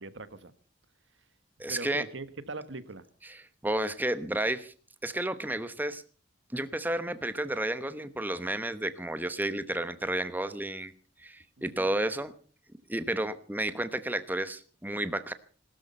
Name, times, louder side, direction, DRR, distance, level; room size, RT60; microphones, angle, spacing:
voice 1, 0.0-0.5 1.7-3.0 11.6-11.9, right 3 dB, 80° right, 13 dB, 1.4 m, -41 dB
voice 2, 1.6-2.0 3.3-4.7 5.0-6.0 6.5-10.9 11.2-12.3 12.9-15.3, right 1 dB, 10° right, 12 dB, 0.9 m, -32 dB
20.5 x 13.0 x 5.4 m, 0.41 s
head